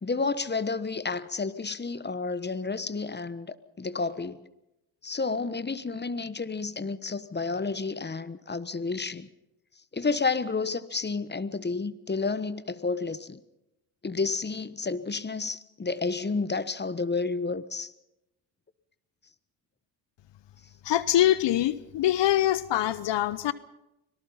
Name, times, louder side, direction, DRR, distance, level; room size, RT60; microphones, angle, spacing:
voice 1, 0.0-4.4 5.0-9.3 9.9-13.4 14.0-17.9, left 4 dB, 20° left, 15 dB, 1.2 m, -31 dB
voice 2, 20.8-23.5, left 13 dB, 55° left, 17 dB, 1.0 m, -24 dB
25.0 x 18.5 x 5.7 m, 0.91 s
supercardioid pair, 60°, 50 cm